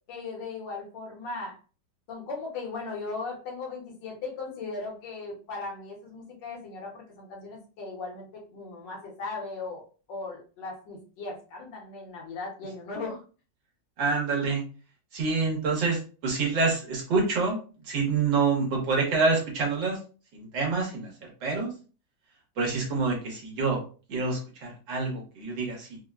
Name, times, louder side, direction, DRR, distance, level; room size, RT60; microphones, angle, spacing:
voice 1, 0.1-1.6 2.1-9.8 10.1-13.2, left 3 dB, 70° left, 0 dB, 1.6 m, -37 dB
voice 2, 14.0-14.6 15.1-20.0 20.3-21.7 22.6-23.8 24.1-26.0, right 4 dB, 75° right, -1 dB, 1.8 m, -27 dB
4.0 x 2.1 x 2.3 m, 0.36 s
omnidirectional pair, 2.0 m